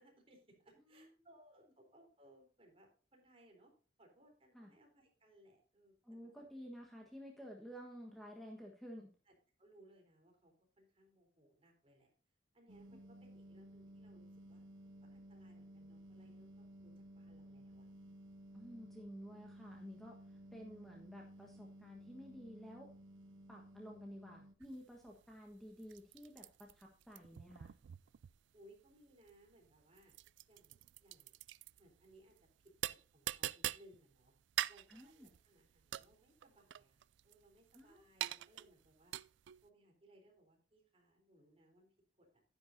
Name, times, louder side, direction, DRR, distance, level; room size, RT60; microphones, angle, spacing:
voice 1, 0.0-3.7 4.0-6.5 9.3-12.1 12.5-14.6 15.1-17.9 28.5-30.1 30.5-31.3 31.7-32.4 32.9-34.3 34.7-39.1 39.6-42.4, right 1 dB, 30° right, 1 dB, 3.8 m, -66 dB
voice 2, 6.0-9.1 18.5-22.9 23.5-27.7 34.9-35.3 37.7-38.1, equal, ahead, -1 dB, 1.3 m, -52 dB
sound 1, 12.7-24.5, right 1 dB, 90° right, 1.0 m, -56 dB
RG Alien Drink, 24.6-39.7, right 13 dB, 70° right, 0.3 m, -45 dB
11.0 x 10.5 x 2.7 m, 0.39 s
head